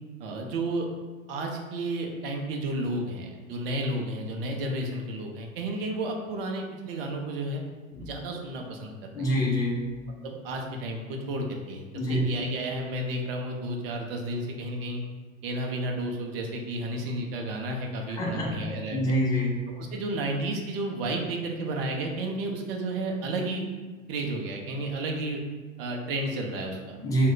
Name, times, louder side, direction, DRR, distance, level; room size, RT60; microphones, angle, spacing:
voice 1, 0.2-0.9 1.3-7.6 8.0-9.4 10.2-11.8 12.1-15.0 15.4-19.2 19.8-23.7 24.1-25.4 25.8-27.0, right 1 dB, 45° right, 2 dB, 0.6 m, -32 dB
voice 2, 9.1-9.9 11.9-12.3 18.1-18.6 18.9-19.6 27.0-27.3, equal, 10° left, -3 dB, 0.4 m, -26 dB
3.1 x 2.3 x 3.7 m, 1.4 s
figure-of-eight pair, 90°, 40 cm